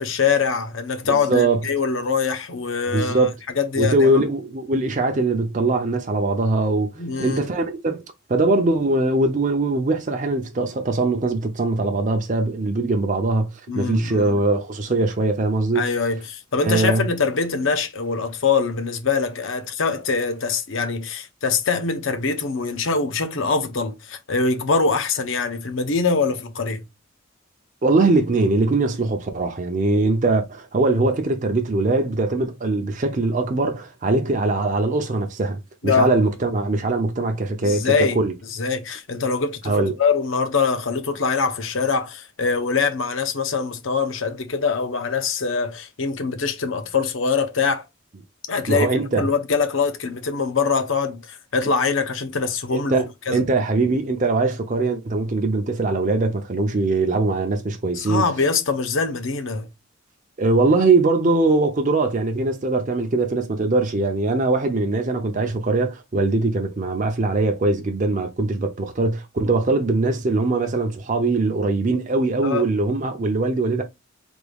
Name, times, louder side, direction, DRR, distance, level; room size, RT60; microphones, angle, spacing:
voice 1, 0.0-3.3 3.6-4.2 7.0-7.4 13.7-14.4 15.7-26.9 35.8-36.1 37.6-38.2 38.5-47.9 48.5-48.9 49.2-53.4 57.9-59.7 72.4-72.7, left 5 dB, 70° left, 0.7 m, -23 dB
voice 2, 1.1-1.6 2.9-3.3 3.8-8.0 8.3-13.5 13.8-15.9 16.6-17.1 27.8-35.6 35.8-38.3 39.6-39.9 48.7-49.3 52.7-53.1 53.3-58.2 60.4-73.8, right 2 dB, 40° right, 0.5 m, -21 dB
3.5 x 2.3 x 3.3 m
head